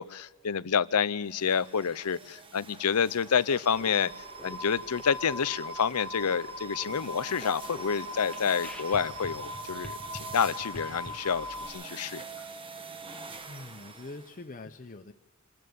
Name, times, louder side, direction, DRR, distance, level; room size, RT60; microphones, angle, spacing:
voice 1, 0.0-4.1 4.4-12.3, left 7 dB, 90° left, 18 dB, 0.6 m, -28 dB
sound 1, 1.2-14.5, right 4 dB, 25° right, 1.2 m, -46 dB
sound 2, 3.6-11.1, equal, 5° left, 1.6 m, -48 dB
sound 3, 3.7-11.7, equal, 70° right, 3.8 m, -41 dB
voice 2, 13.5-15.1, left 2 dB, 35° left, 4 dB, 0.8 m, -44 dB
26.5 x 14.0 x 7.0 m, 1.1 s
head